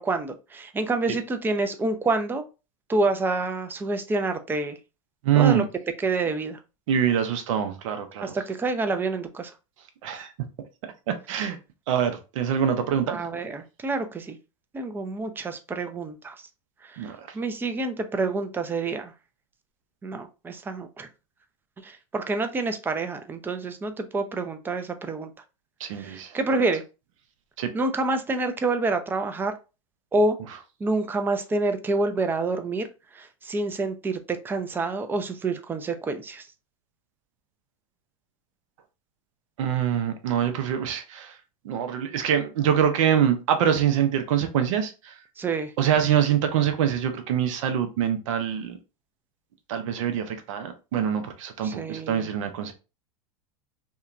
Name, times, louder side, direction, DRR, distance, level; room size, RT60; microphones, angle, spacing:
voice 1, 0.0-2.5 2.9-4.8 5.4-5.7 6.0-6.6 8.2-9.5 10.1-10.2 13.1-14.4 14.7-16.4 16.8-19.1 20.0-21.1 21.8-25.3 25.9-26.8 27.7-29.5 30.1-30.4 30.8-32.9 33.1-36.5 45.4-45.7 51.6-52.3, right 3 dB, 10° right, 0.4 m, -27 dB
voice 2, 5.2-5.6 6.9-8.3 10.0-10.3 11.1-11.6 11.9-13.2 17.0-17.2 25.8-26.3 27.6-27.7 39.6-41.3 41.6-45.1 45.8-48.8 49.7-52.7, right 9 dB, 70° right, 0.6 m, -24 dB
2.8 x 2.2 x 2.4 m
hypercardioid pair, 105°, 17 cm